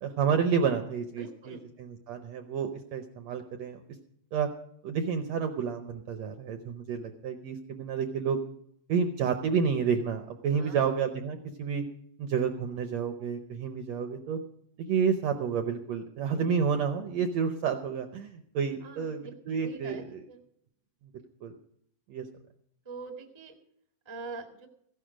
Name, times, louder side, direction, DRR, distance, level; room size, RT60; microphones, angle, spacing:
voice 1, 0.0-3.8 4.3-4.5 4.8-8.4 8.9-11.8 12.2-14.4 14.9-20.2 21.4-21.5 22.1-22.3, right 6 dB, 75° right, 7 dB, 1.6 m, -30 dB
voice 2, 1.2-1.6 10.5-10.9 18.8-19.3 19.6-20.4 22.8-23.5 24.0-24.7, right 4 dB, 20° right, 4 dB, 0.7 m, -43 dB
15.5 x 11.0 x 5.0 m, 0.72 s
omnidirectional pair, 4.0 m